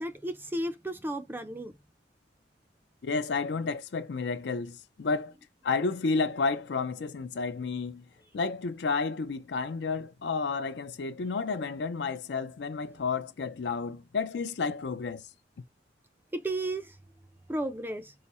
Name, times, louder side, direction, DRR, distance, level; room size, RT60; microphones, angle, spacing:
voice 1, 0.0-1.8 16.3-17.0 17.5-18.1, right 1 dB, 10° right, 0.4 m, -33 dB
voice 2, 3.0-5.3 5.6-8.0 8.3-15.2, left 4 dB, 70° left, 0.5 m, -31 dB
4.8 x 2.0 x 4.1 m
head